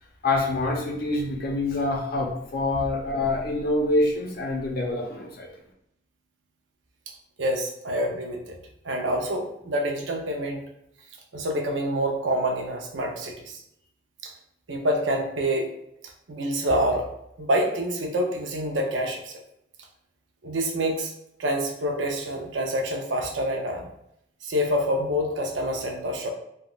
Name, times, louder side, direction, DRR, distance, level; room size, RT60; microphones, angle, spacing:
voice 1, 0.2-5.5, left 2 dB, 55° left, 0 dB, 0.6 m, -26 dB
voice 2, 7.4-8.6 8.8-10.7 11.3-13.6 14.2-14.3 14.7-15.7 16.3-17.1 17.4-19.3 20.4-21.1 21.4-23.9 24.4-26.3, equal, 80° right, 1 dB, 0.6 m, -27 dB
3.4 x 2.3 x 2.3 m, 0.77 s
head